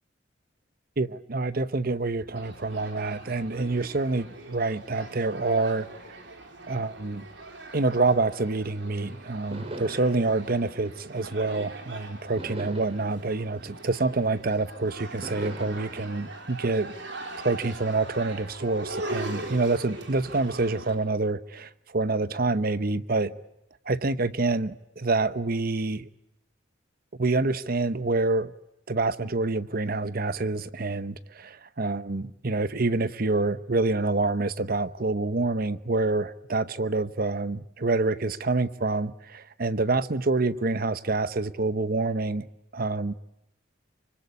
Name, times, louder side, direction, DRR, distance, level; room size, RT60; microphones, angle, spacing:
voice 1, 1.0-5.9 6.7-7.2 7.7-16.9 17.4-23.4 23.9-26.1 27.1-28.5 28.9-42.5 42.7-43.1, right 3 dB, 50° right, 0.9 m, -27 dB
sound 1, 2.4-21.0, right 2 dB, 70° right, 4.5 m, -41 dB
sound 2, 9.5-11.8 12.4-14.6 15.2-15.8, right 1 dB, 35° right, 3.2 m, -42 dB
25.0 x 24.5 x 8.3 m
head